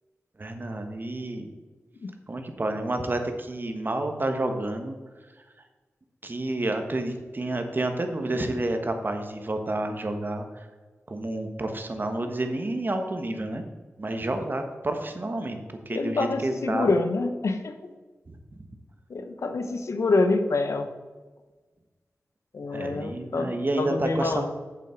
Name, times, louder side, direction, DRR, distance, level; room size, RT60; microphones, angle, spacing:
voice 1, 0.4-1.5 2.3-5.0 6.2-10.7 11.1-13.6 14.0-16.9 18.3-18.4 22.7-24.5, right 2 dB, 45° right, 5 dB, 1.2 m, -30 dB
voice 2, 15.9-17.9 19.1-20.9 22.5-24.5, left 3 dB, 75° left, 8 dB, 0.8 m, -26 dB
8.3 x 7.4 x 4.5 m, 1.3 s
cardioid pair, 55°, 5 cm